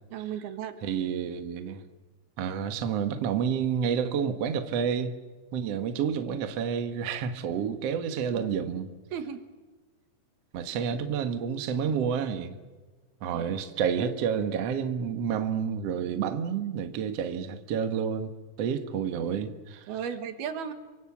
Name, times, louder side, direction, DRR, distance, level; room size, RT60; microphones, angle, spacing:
voice 1, 0.1-0.8 8.3-8.5 9.1-9.4 13.3-13.6 19.9-20.7, right 8 dB, 65° right, 3.3 m, -35 dB
voice 2, 0.8-1.8 2.4-5.2 5.5-8.9 10.5-12.6 13.2-18.3 18.6-19.8, right 7 dB, 90° right, 1.3 m, -29 dB
27.5 x 24.5 x 7.3 m
omnidirectional pair, 5.4 m